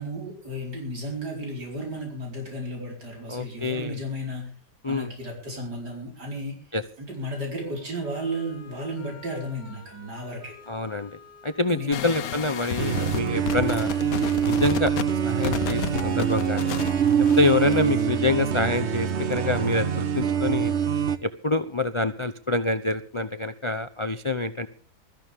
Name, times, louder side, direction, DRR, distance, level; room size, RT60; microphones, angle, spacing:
voice 1, 0.0-4.5 4.9-6.6 7.0-10.5 11.7-12.1, equal, 70° right, 0 dB, 5.2 m, -33 dB
voice 2, 3.3-4.0 4.8-5.1 6.7-6.8 10.7-11.1 11.4-13.9 14.5-14.9 15.2-16.8 17.2-20.7 21.2-24.7, left 2 dB, 50° left, 11 dB, 0.3 m, -26 dB
sound 1, 7.4-18.4, left 3 dB, 10° left, 4.7 m, -52 dB
sound 2, 11.9-18.1, left 10 dB, 80° left, 1.5 m, -33 dB
Park Of Joy, 12.8-21.2, right 7 dB, 45° right, 1.1 m, -24 dB
21.0 x 14.0 x 3.6 m, 0.40 s
omnidirectional pair, 1.8 m